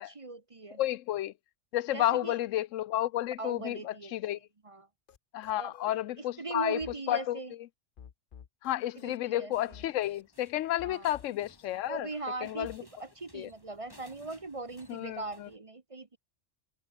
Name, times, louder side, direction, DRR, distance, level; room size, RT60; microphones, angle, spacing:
voice 1, 0.0-0.8 1.9-2.4 3.4-4.1 4.6-4.9 5.6-7.5 9.0-9.8 10.8-11.1 11.9-16.2, right 3 dB, 30° right, 1.0 m, -40 dB
voice 2, 0.8-1.3 1.7-4.4 5.3-6.8 7.1-7.4 8.6-12.1 12.4-12.8 13.3-13.5 14.9-15.5, left 13 dB, 85° left, 1.0 m, -31 dB
sound 1, 5.1-5.2 5.4-6.0 6.8-7.0 8.0-9.2 9.7-10.2 10.8-11.7 12.1-12.8, left 8 dB, 50° left, 0.9 m, -52 dB
sound 2, 9.5-15.6, equal, 15° left, 7.9 m, -60 dB
omnidirectional pair, 1.3 m